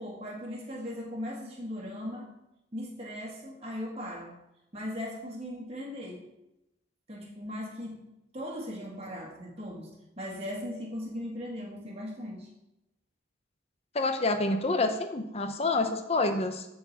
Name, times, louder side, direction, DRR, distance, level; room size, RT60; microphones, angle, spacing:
voice 1, 0.0-2.3 2.7-4.3 4.7-6.3 7.1-8.0 8.3-9.9 10.2-12.5, left 1 dB, 30° right, -2 dB, 1.8 m, -38 dB
voice 2, 13.9-16.7, left 2 dB, 30° left, 7 dB, 0.7 m, -28 dB
7.7 x 4.7 x 7.2 m, 0.89 s
head